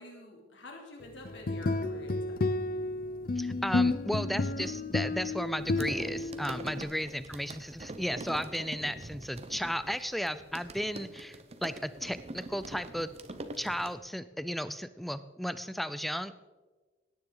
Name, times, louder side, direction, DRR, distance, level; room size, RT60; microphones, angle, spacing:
voice 1, 0.0-2.4 6.9-7.1, left 1 dB, 65° left, 0 dB, 3.0 m, -48 dB
sound 1, 1.3-6.8, left 2 dB, 50° left, 0.6 m, -31 dB
voice 2, 3.4-13.1 13.6-16.3, equal, ahead, 14 dB, 0.4 m, -34 dB
sound 2, 5.6-13.9, right 2 dB, 35° right, 0.8 m, -44 dB
17.0 x 9.8 x 3.9 m, 1.3 s
head